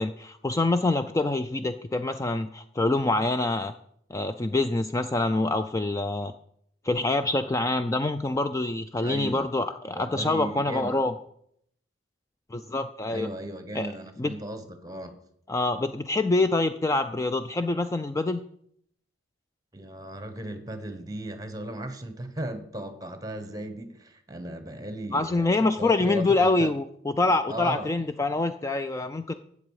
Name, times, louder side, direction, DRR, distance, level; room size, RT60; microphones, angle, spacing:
voice 1, 0.0-3.7 4.1-6.3 6.8-11.1 12.5-13.3 13.7-13.9 14.2-14.3 15.5-18.4 25.1-29.3, left 2 dB, 15° left, 9 dB, 0.3 m, -26 dB
voice 2, 9.0-9.5 9.9-11.0 13.1-15.2 19.7-26.7 27.5-27.9, right 1 dB, 20° right, 9 dB, 1.1 m, -36 dB
12.5 x 8.3 x 4.8 m, 0.69 s
head